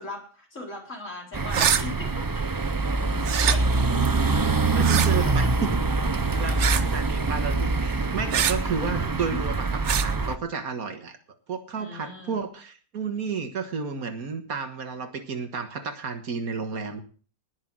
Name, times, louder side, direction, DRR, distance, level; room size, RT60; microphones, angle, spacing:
voice 1, 0.0-2.6 3.4-5.5 5.9-7.0 8.8-9.4 11.8-12.4, left 2 dB, 60° left, 0 dB, 4.5 m, -41 dB
sound 1, 1.3-10.4, right 3 dB, 35° right, 0.3 m, -24 dB
sound 2, 1.5-1.8 3.2-3.6 4.8-5.1 6.6-6.9 8.3-8.6 9.8-10.1, right 8 dB, 55° right, 1.1 m, -23 dB
voice 2, 4.7-5.8 6.4-11.2 11.5-17.0, right 5 dB, 80° right, 7 dB, 1.9 m, -32 dB
19.5 x 6.5 x 6.2 m, 0.41 s
omnidirectional pair, 1.5 m